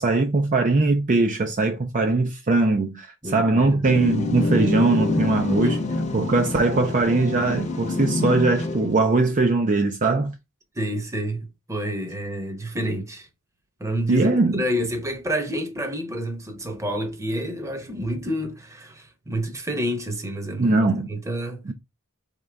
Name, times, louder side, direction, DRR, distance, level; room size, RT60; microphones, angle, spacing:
voice 1, 0.0-10.3 14.1-14.6 20.6-21.1 21.7-21.8, right 3 dB, 35° right, 0.5 m, -21 dB
voice 2, 3.2-3.8 4.6-4.9 10.7-13.3 13.8-21.6, equal, 15° right, 0.9 m, -29 dB
sound 1, 3.8-9.1, left 2 dB, 35° left, 0.8 m, -26 dB
4.0 x 3.7 x 3.4 m
head